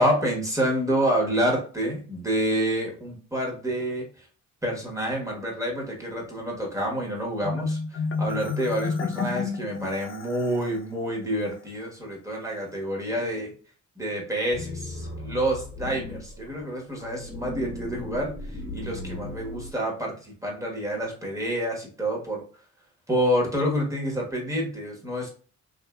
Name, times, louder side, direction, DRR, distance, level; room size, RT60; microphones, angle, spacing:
voice 1, 0.0-4.3 4.6-13.5 14.0-22.4 23.1-25.3, equal, 10° right, -1 dB, 1.1 m, -28 dB
Marimba xylophone, 7.4-10.8, left 5 dB, 45° left, 0.5 m, -30 dB
sound 1, 14.5-19.7, left 2 dB, 30° left, 1.0 m, -37 dB
2.7 x 2.6 x 2.2 m, 0.41 s
cardioid pair, 90°, 30 cm